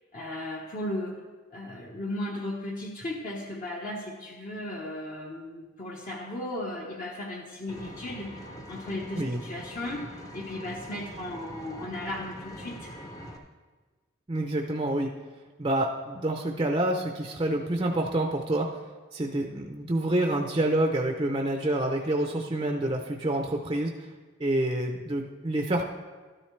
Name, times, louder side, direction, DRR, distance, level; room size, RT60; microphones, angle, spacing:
voice 1, 0.1-1.2 1.5-12.9, left 1 dB, 40° left, -1 dB, 1.1 m, -36 dB
Vehicle, 7.7-13.4, equal, 15° left, 0.8 m, -43 dB
voice 2, 14.3-15.1 15.6-18.7 19.1-24.1 24.4-25.8, right 1 dB, 25° right, 2 dB, 0.6 m, -27 dB
13.0 x 10.5 x 3.2 m, 1.4 s
head